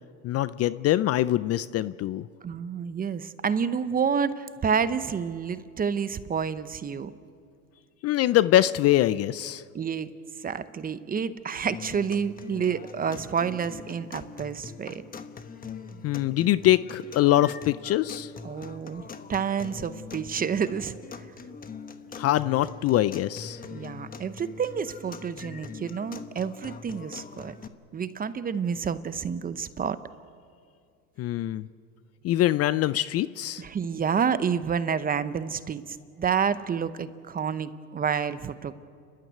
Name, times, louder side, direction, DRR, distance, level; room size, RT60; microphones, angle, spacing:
voice 1, 0.2-2.3 8.0-9.6 16.0-18.3 22.2-23.6 31.2-31.7 32.2-33.6, left 14 dB, 40° left, 16 dB, 0.5 m, -23 dB
voice 2, 2.4-7.1 9.7-10.1 10.4-15.0 18.4-19.0 19.3-21.3 23.7-27.5 27.9-30.0 33.6-38.7, right 6 dB, 20° right, 13 dB, 0.8 m, -29 dB
sound 1, 11.7-27.7, left 5 dB, 20° left, 1.1 m, -42 dB
30.0 x 12.5 x 9.2 m, 2.3 s
supercardioid pair, 115°, 40 cm